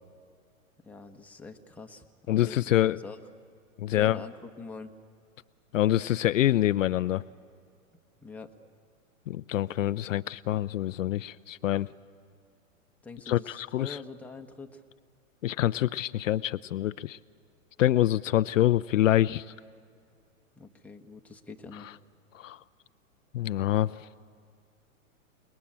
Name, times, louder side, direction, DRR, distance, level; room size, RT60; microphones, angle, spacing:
voice 1, 0.8-3.2 3.9-4.9 8.2-8.5 13.0-14.8 20.6-21.9, left 4 dB, 5° left, 2 dB, 1.3 m, -44 dB
voice 2, 2.3-3.0 3.8-4.2 5.7-7.2 9.3-11.9 13.3-14.0 15.4-17.2 17.8-19.5 22.3-22.6 23.3-24.1, left 13 dB, 65° left, 14 dB, 0.6 m, -26 dB
28.5 x 20.0 x 8.8 m, 2.3 s
hypercardioid pair, 115°, 42 cm